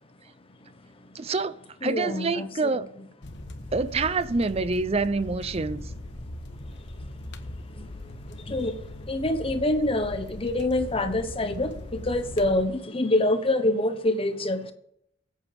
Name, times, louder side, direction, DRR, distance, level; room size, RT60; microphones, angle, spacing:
voice 1, 1.1-1.5 1.8-2.9 3.7-5.8, right 3 dB, 30° right, 0.5 m, -26 dB
voice 2, 1.8-2.5 2.7-2.8 6.9-7.3 7.7-14.7, left 1 dB, 30° left, 1.1 m, -26 dB
sound 1, 3.2-12.6, left 1 dB, 60° left, 1.1 m, -40 dB
24.0 x 8.4 x 3.5 m
head